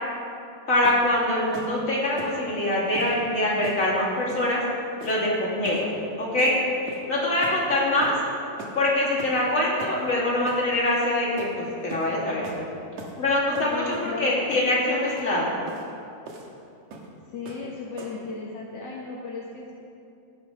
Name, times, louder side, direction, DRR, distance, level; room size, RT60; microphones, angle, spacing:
voice 1, 0.7-4.6 5.0-5.9 6.2-6.6 6.8-8.1 8.7-12.5 13.2-15.5, left 1 dB, 25° left, -6 dB, 3.1 m, -24 dB
sound 1, 0.8-1.1 1.5-1.7 2.2-2.4 2.9-3.1 3.6-3.8 4.3-4.5 5.0-5.3 5.6-5.9 6.4-6.6 6.9-7.1 7.4-7.6 8.0-8.2 8.6-8.8 9.2-9.4 9.8-10.0 10.5-10.6 11.4-11.5 11.9-12.1 12.4-12.6 13.0-13.2 13.5-14.1 14.5-14.7 15.1-15.2 15.7-15.8 16.3-16.5 16.9-17.1 17.5-17.7 18.0-18.3, right 3 dB, 75° right, 2.7 m, -40 dB
voice 2, 13.6-14.6 17.3-19.7, left 4 dB, 50° left, -4 dB, 1.4 m, -35 dB
16.0 x 10.0 x 5.1 m, 2.6 s
omnidirectional pair, 3.3 m